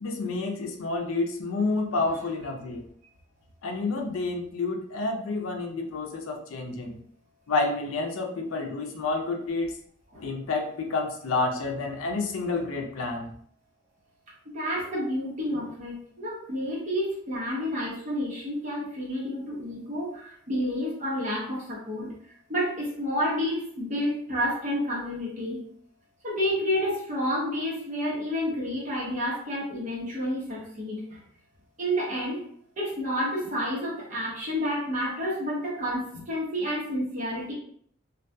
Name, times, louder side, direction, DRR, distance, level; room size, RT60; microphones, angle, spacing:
voice 1, 0.0-2.8 3.6-7.0 7.5-9.8 10.2-13.3, left 3 dB, 80° left, 2 dB, 0.5 m, -29 dB
voice 2, 14.5-22.1 22.5-25.6 26.2-31.2 31.8-32.4 32.8-37.5, equal, 35° right, -6 dB, 0.8 m, -30 dB
2.6 x 2.2 x 2.2 m, 0.62 s
head